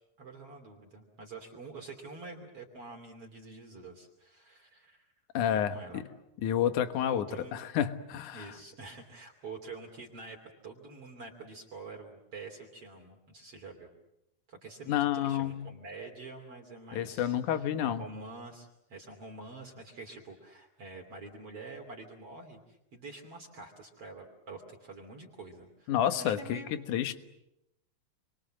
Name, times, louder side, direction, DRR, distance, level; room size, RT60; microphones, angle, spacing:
voice 1, 0.2-5.1 5.7-6.0 6.8-6.9 7.1-7.6 8.3-10.4 10.6-13.9 14.5-26.7, right 3 dB, 45° right, 1 dB, 3.8 m, -47 dB
voice 2, 5.3-6.0 6.4-8.5 14.9-15.7 16.9-18.0 25.9-27.1, left 10 dB, 65° left, 10 dB, 2.7 m, -30 dB
30.0 x 23.5 x 7.7 m, 0.86 s
omnidirectional pair, 4.0 m